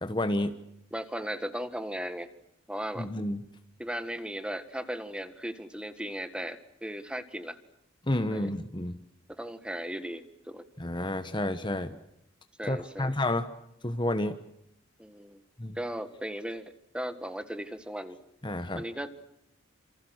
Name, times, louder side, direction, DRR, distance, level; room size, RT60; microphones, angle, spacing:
voice 1, 0.0-0.6 3.0-3.4 8.1-9.0 10.8-12.0 12.7-13.5 13.8-14.4 15.6-15.8 18.4-18.8, left 1 dB, 20° left, 9 dB, 1.2 m, -30 dB
voice 2, 0.9-2.3 2.7-3.1 3.8-7.6 8.3-8.5 9.3-10.6 12.6-13.1 15.0-15.4 15.8-16.7 16.9-18.2 18.7-19.2, equal, 5° right, 10 dB, 1.7 m, -37 dB
29.5 x 27.5 x 6.5 m, 0.79 s
head